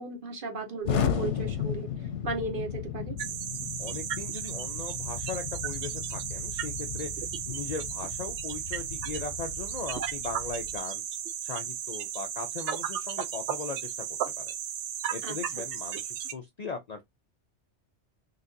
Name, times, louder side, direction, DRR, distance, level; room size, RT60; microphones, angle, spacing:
voice 1, 0.0-1.9 2.2-3.2 15.2-15.4, right 3 dB, 50° right, 1.0 m, -35 dB
Explosion, 0.8-10.8, left 8 dB, 90° left, 0.9 m, -35 dB
sound 1, 3.2-16.3, right 9 dB, 80° right, 0.9 m, -35 dB
voice 2, 3.8-11.0 11.4-14.1 14.4-14.5 15.1-17.0, left 5 dB, 55° left, 0.4 m, -39 dB
3.9 x 2.4 x 2.6 m
omnidirectional pair, 1.2 m